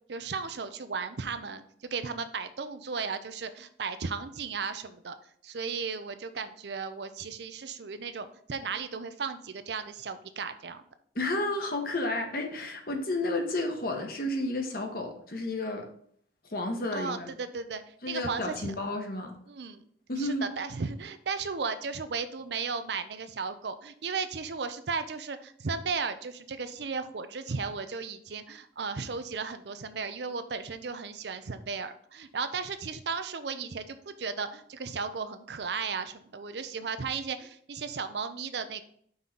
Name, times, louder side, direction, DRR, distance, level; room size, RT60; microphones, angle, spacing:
voice 1, 0.1-5.2 5.4-10.8 16.9-18.7 19.5-19.8 20.2-38.8, right 5 dB, 70° right, 11 dB, 0.6 m, -35 dB
voice 2, 11.1-15.9 16.5-17.3 18.0-19.3 20.1-20.5, left 2 dB, 55° left, 2 dB, 1.2 m, -31 dB
5.5 x 3.8 x 5.8 m, 0.62 s
head